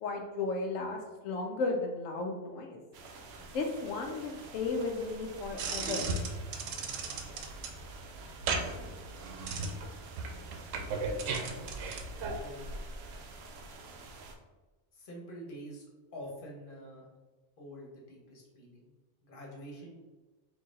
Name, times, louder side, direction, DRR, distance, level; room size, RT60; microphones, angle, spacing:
voice 1, 0.0-2.8 3.5-6.0, left 3 dB, 85° left, 2 dB, 1.0 m, -34 dB
sound 1, 2.9-14.4, right 2 dB, 65° right, 0.7 m, -48 dB
sound 2, 5.6-12.4, right 3 dB, 85° right, 1.0 m, -36 dB
voice 2, 12.3-12.7 14.9-17.1 17.6-18.9 19.2-19.9, equal, 45° left, -2 dB, 1.2 m, -47 dB
4.0 x 2.7 x 3.7 m, 1.2 s
omnidirectional pair, 1.3 m